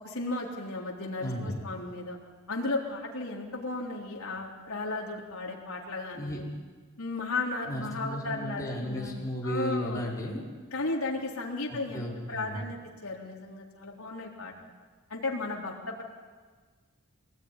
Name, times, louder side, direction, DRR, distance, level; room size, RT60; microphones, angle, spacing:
voice 1, 0.0-2.2 2.5-6.5 7.0-10.0 10.7-14.5 15.1-16.0, left 3 dB, 70° left, -2 dB, 3.8 m, -35 dB
voice 2, 1.2-1.6 6.1-6.4 7.7-10.4 11.7-12.6, equal, 15° left, -4 dB, 5.3 m, -34 dB
22.5 x 19.5 x 9.7 m, 1.5 s
head